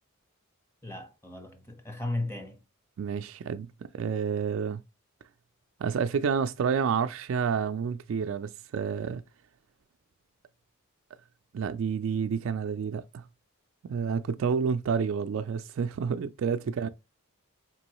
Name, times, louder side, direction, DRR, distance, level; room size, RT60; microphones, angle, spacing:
voice 1, 0.8-2.6, left 2 dB, 10° left, 0.9 m, -35 dB
voice 2, 3.0-4.8 5.8-9.2 11.5-13.3 13.8-16.9, right 6 dB, 65° right, 0.3 m, -29 dB
4.6 x 3.0 x 2.9 m
head